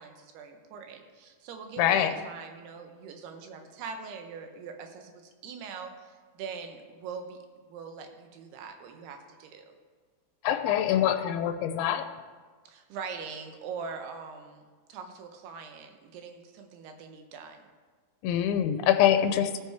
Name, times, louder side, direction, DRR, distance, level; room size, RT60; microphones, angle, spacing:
voice 1, 0.0-7.4 7.7-9.7 12.7-14.6 14.9-17.7, right 5 dB, 80° right, 5 dB, 3.1 m, -42 dB
voice 2, 1.8-2.1 10.4-12.0 18.2-19.6, left 10 dB, 85° left, 8 dB, 2.6 m, -24 dB
16.0 x 9.1 x 3.5 m, 1.5 s
omnidirectional pair, 4.6 m